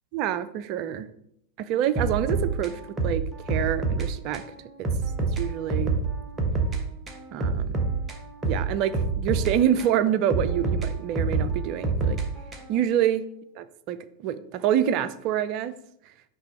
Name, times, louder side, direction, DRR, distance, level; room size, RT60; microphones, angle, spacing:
voice 1, 0.1-1.1 1.6-4.4 5.2-5.9 7.3-7.9 8.4-12.2 12.7-13.2 13.6-15.7, right 10 dB, 40° right, 13 dB, 0.4 m, -26 dB
sound 1, 2.0-4.1 4.3-4.5 4.8-6.8 7.1-10.0 10.3-12.8, right 3 dB, 15° right, 1.0 m, -27 dB
6.0 x 3.0 x 5.5 m, 0.75 s
figure-of-eight pair, 90°, 0 cm